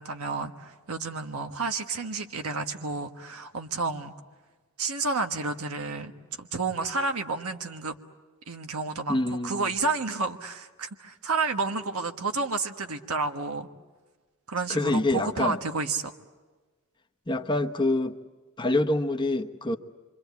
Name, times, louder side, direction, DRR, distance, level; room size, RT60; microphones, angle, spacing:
voice 1, 0.0-4.1 4.8-6.1 6.4-7.9 8.5-13.7 14.5-16.1, right 3 dB, 80° right, 6 dB, 1.4 m, -30 dB
voice 2, 9.1-9.7 14.7-15.6 17.3-18.2 18.6-19.8, left 2 dB, 20° left, 5 dB, 1.0 m, -26 dB
27.5 x 25.0 x 8.3 m, 1.3 s
head